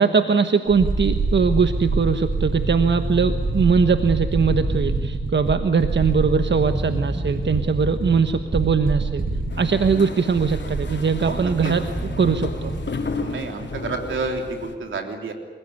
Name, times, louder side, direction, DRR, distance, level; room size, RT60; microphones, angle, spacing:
voice 1, 0.0-9.2 9.6-11.8 12.2-12.7, right 5 dB, 65° right, 8 dB, 1.3 m, -21 dB
sound 1, 0.7-13.1 13.3-13.4, right 2 dB, 45° right, 8.0 m, -26 dB
sound 2, 9.5-14.7, left 4 dB, 65° left, 3.8 m, -33 dB
voice 2, 11.2-11.7 13.2-15.3, right 3 dB, 90° right, 4 dB, 3.4 m, -29 dB
28.0 x 16.5 x 9.7 m, 1.5 s
cardioid pair, 40°, 20 cm